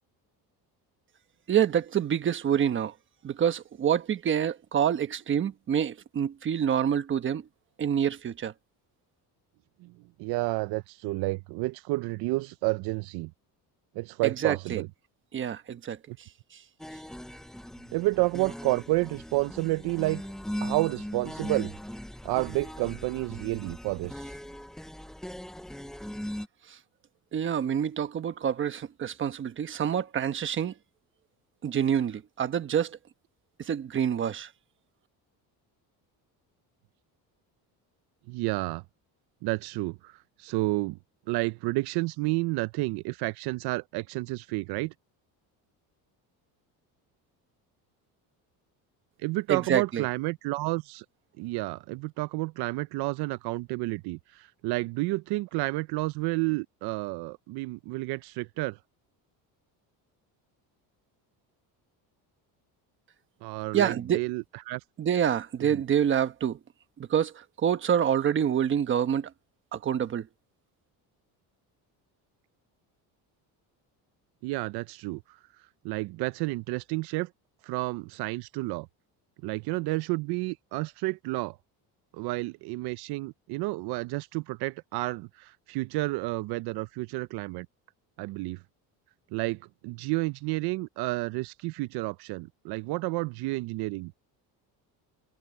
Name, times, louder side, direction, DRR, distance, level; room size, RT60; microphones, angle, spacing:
voice 1, 1.5-2.9 3.2-7.4 7.8-8.5 14.2-14.8 15.3-16.6 26.7-26.8 27.3-30.7 31.6-33.0 33.6-34.5 49.5-50.0 63.7-64.2 65.0-66.6 67.0-69.3 69.7-70.3, right 9 dB, 30° right, 1.2 m, -27 dB
voice 2, 10.2-13.3 13.9-14.9 17.9-20.2 20.6-21.7 22.2-24.3 38.3-38.8 39.4-41.0 41.3-44.9 49.2-51.0 51.4-58.8 63.4-64.8 65.7-65.8 74.4-75.4 75.8-77.3 77.6-78.9 79.4-81.6 82.1-87.7 88.2-88.6 89.3-94.2, right 22 dB, 80° right, 0.5 m, -30 dB
sound 1, 16.8-26.5, equal, ahead, 0.4 m, -39 dB
cardioid pair, 170°, 39 cm